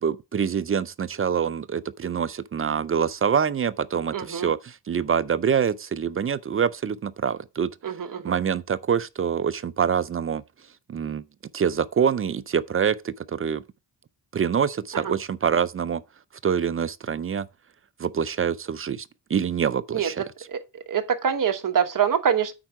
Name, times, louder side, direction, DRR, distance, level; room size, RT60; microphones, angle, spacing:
voice 1, 0.0-7.7 8.2-10.4 10.9-11.2 11.5-13.6 14.3-16.0 16.4-17.5 18.0-20.2, right 7 dB, 35° right, 0.4 m, -25 dB
voice 2, 4.1-4.5 7.8-8.4 14.9-15.1 19.9-20.1 20.5-22.5, right 8 dB, 50° right, 1.2 m, -25 dB
8.8 x 4.5 x 4.8 m
cardioid pair, 100°, 42 cm